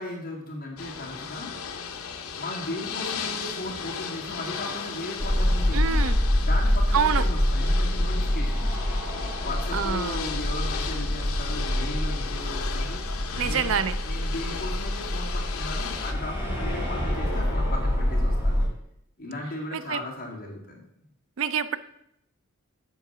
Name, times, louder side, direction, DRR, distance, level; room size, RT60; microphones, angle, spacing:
voice 1, 0.0-1.5 2.4-6.0 6.4-8.8 9.4-13.0 13.4-18.6 19.2-20.8, left 1 dB, 40° left, -3 dB, 2.2 m, -36 dB
Ocean / Boat Water vehicle, 0.8-16.1, left 6 dB, 75° left, 0.8 m, -36 dB
sound 1, 5.2-18.6, left 1 dB, 10° right, 3.2 m, -26 dB
voice 2, 5.7-6.2 6.9-7.2 9.7-10.2 13.4-14.0 19.7-20.0 21.4-21.8, right 7 dB, 60° right, 13 dB, 0.4 m, -26 dB
7.5 x 4.7 x 6.7 m, 0.75 s
head